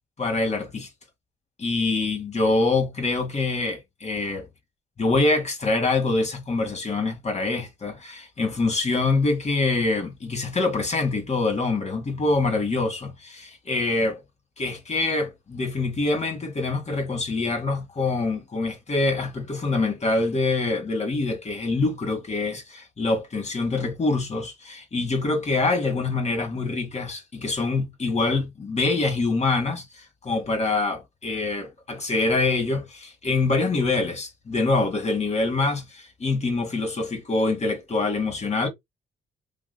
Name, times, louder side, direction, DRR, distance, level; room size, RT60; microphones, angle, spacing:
voice 1, 0.2-0.9 1.6-4.5 5.0-14.2 14.6-38.7, left 3 dB, 35° left, 2.0 m, -25 dB
6.0 x 3.1 x 2.2 m
cardioid pair, 90°, 20 cm